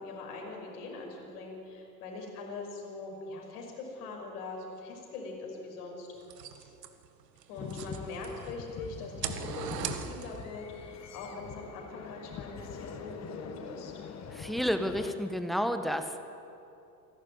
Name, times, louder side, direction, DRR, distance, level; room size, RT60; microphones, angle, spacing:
voice 1, 0.0-6.1 6.5-6.7 7.5-13.9, left 3 dB, 65° left, 0 dB, 6.0 m, -42 dB
sound 1, 6.2-8.6 9.0-10.6, right 9 dB, 75° right, 1.5 m, -40 dB
sound 2, 7.6-15.1, left 6 dB, 35° left, 2.0 m, -44 dB
voice 2, 14.3-16.2, equal, ahead, 7 dB, 1.6 m, -30 dB
27.0 x 12.0 x 9.6 m, 2.8 s
figure-of-eight pair, 75°, 49 cm